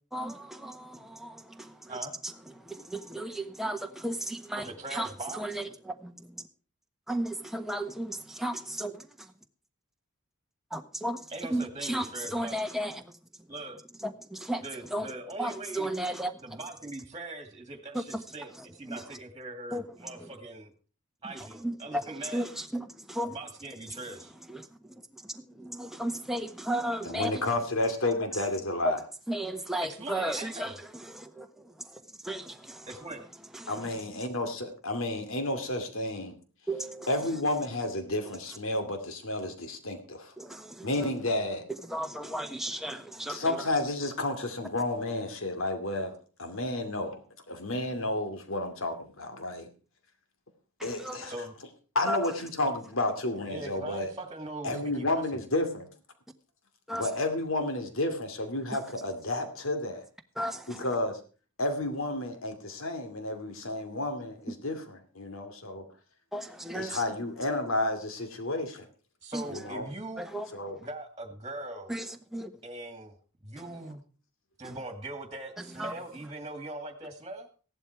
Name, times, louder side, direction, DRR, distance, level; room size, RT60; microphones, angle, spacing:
voice 1, 0.1-2.0 2.5-6.4 7.1-8.9 10.7-11.2 11.5-13.1 14.0-14.6 14.9-15.1 15.4-16.6 17.9-18.2 18.6-19.2 19.7-20.3 21.3-23.4 23.9-24.0 24.5-27.5 28.8-28.9 29.3-33.0 33.5-34.0 36.7-37.1 40.4-41.1 41.9-43.7 50.8-51.3 52.1-52.3 56.9-57.1 60.4-60.9 66.3-67.0 69.3-69.6 70.2-70.5 71.9-72.5 73.6-73.7 74.6-74.8 75.6-75.9, right 1 dB, ahead, 1.2 m, -35 dB
voice 2, 4.6-5.4 11.3-12.6 13.5-13.8 14.6-15.9 16.4-20.7 21.2-22.5 23.2-24.3 29.8-30.8 32.9-33.2 51.3-51.5 53.5-55.2 69.2-70.3 70.8-71.9 72.6-73.2 73.4-74.0 74.6-77.5, right 2 dB, 20° right, 2.2 m, -41 dB
voice 3, 27.0-29.0 33.7-36.4 37.1-40.3 40.8-41.7 43.3-46.1 46.4-47.2 47.5-49.7 50.8-51.3 51.9-54.1 54.6-55.9 56.9-60.0 60.7-61.2 61.6-65.8 66.7-68.8 69.5-69.9 70.5-70.8, left 2 dB, 60° left, 2.5 m, -31 dB
16.0 x 11.0 x 4.7 m
head